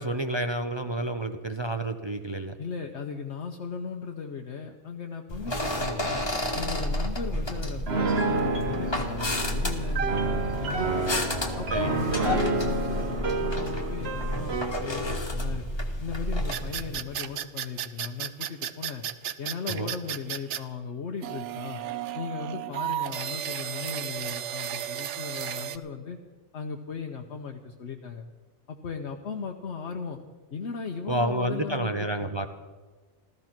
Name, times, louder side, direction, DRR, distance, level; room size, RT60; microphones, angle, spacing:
voice 1, 0.0-2.6 11.7-12.0 19.7-19.9 31.1-32.5, right 1 dB, 30° right, 7 dB, 0.6 m, -29 dB
voice 2, 2.6-6.3 6.5-11.1 11.6-15.7 16.0-19.0 19.4-21.8 22.1-26.2 26.5-28.2 28.7-30.2 30.5-32.3, left 5 dB, 70° left, 2 dB, 1.2 m, -37 dB
sound 1, 5.3-17.0, left 1 dB, 25° left, 1.4 m, -31 dB
Piano, 7.9-14.8, right 3 dB, 60° right, 1.5 m, -29 dB
sound 2, 16.5-20.6 21.2-25.8, right 11 dB, 80° right, 1.0 m, -33 dB
14.5 x 14.0 x 6.0 m, 1.4 s
omnidirectional pair, 1.2 m